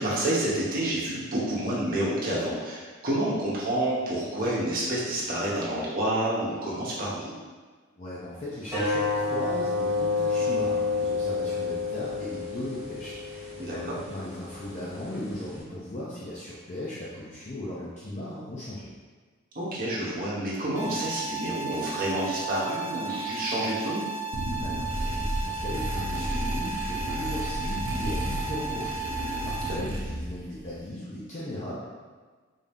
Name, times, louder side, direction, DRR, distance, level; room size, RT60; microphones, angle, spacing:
voice 1, 0.0-7.3 10.3-10.4 13.6-14.0 19.5-24.1 29.6-29.8, right 1 dB, 45° right, -6 dB, 1.0 m, -29 dB
voice 2, 8.0-18.9 24.5-24.8 25.2-31.8, left 1 dB, 35° left, -8 dB, 0.6 m, -37 dB
sound 1, 8.7-15.6, left 4 dB, 10° right, 1.2 m, -30 dB
sound 2, 20.7-29.7, right 4 dB, 85° left, 1.5 m, -35 dB
sound 3, 24.3-30.4, equal, 80° right, 0.8 m, -32 dB
3.5 x 2.7 x 3.5 m, 1.4 s
head